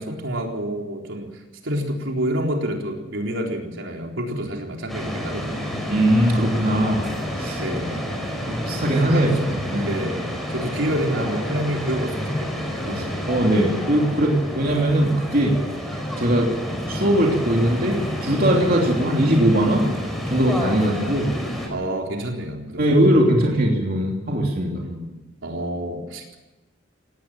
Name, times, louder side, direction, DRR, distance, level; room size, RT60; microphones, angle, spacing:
voice 1, 0.0-5.9 7.6-8.0 9.1-9.5 9.8-13.1 21.7-23.7 24.8-26.4, right 1 dB, 70° right, 1 dB, 4.1 m, -28 dB
sound 1, 4.9-21.7, equal, ahead, 4.6 m, -29 dB
voice 2, 5.9-7.0 7.3-7.6 8.5-9.3 9.7-9.9 13.3-15.6 16.2-16.5 16.9-19.9 20.2-21.3 22.8-24.8, right 1 dB, 45° right, -1 dB, 3.1 m, -20 dB
18.0 x 18.0 x 9.0 m, 1.1 s
head